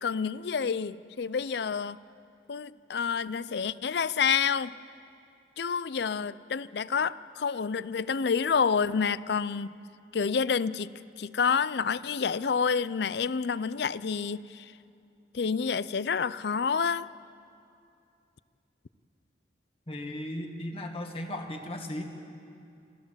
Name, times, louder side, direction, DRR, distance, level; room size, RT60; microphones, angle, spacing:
voice 1, 0.0-2.0 2.5-4.7 5.6-9.7 10.1-10.9 11.2-14.7 15.3-17.1, left 6 dB, 60° left, 18 dB, 0.5 m, -28 dB
voice 2, 19.9-22.0, left 1 dB, 30° left, 4 dB, 1.7 m, -36 dB
27.5 x 15.0 x 7.4 m, 2.5 s
head